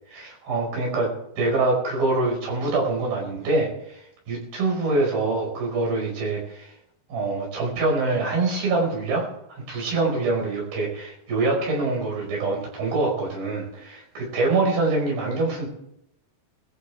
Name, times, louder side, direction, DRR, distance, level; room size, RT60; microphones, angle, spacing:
voice 1, 0.1-4.0 4.3-6.7 7.1-15.7, right 3 dB, 60° right, -1 dB, 7.2 m, -25 dB
21.5 x 14.5 x 3.5 m, 0.79 s
omnidirectional pair, 4.7 m